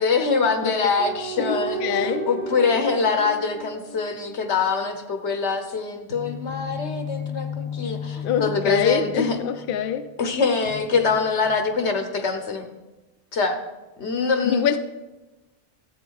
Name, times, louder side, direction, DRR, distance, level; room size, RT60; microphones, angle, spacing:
voice 1, 0.0-9.4 10.2-12.7 13.3-13.6 14.0-14.6, left 4 dB, 90° left, 1.4 m, -24 dB
sound 1, 1.0-4.7 6.1-9.8 10.6-11.9, left 1 dB, 60° right, 1.7 m, -33 dB
voice 2, 1.4-2.3 8.2-10.1 14.4-14.8, left 8 dB, 60° left, 0.7 m, -25 dB
13.0 x 8.1 x 4.7 m
omnidirectional pair, 1.1 m